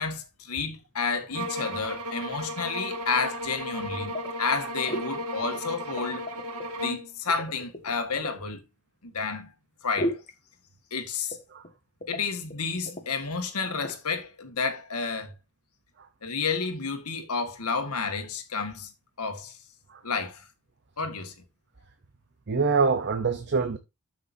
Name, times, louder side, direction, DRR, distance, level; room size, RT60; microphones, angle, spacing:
voice 1, 0.0-6.3 6.8-8.6 9.0-9.5 9.8-10.2 10.9-11.4 12.1-15.3 16.2-18.9 19.2-19.5 20.0-20.4 21.0-21.3, left 4 dB, 80° left, 1.7 m, -31 dB
sound 1, 1.3-7.1, equal, 70° right, 1.8 m, -35 dB
sound 2, 4.1-4.6 4.9-5.1 5.4-6.7 7.3-8.4 10.0-10.3 11.3-11.7 12.0-12.2 12.5-12.6 12.9-13.1 13.7-14.0, equal, 35° left, 1.6 m, -34 dB
voice 2, 22.5-23.8, right 4 dB, 50° right, 0.8 m, -25 dB
12.5 x 6.0 x 2.7 m
head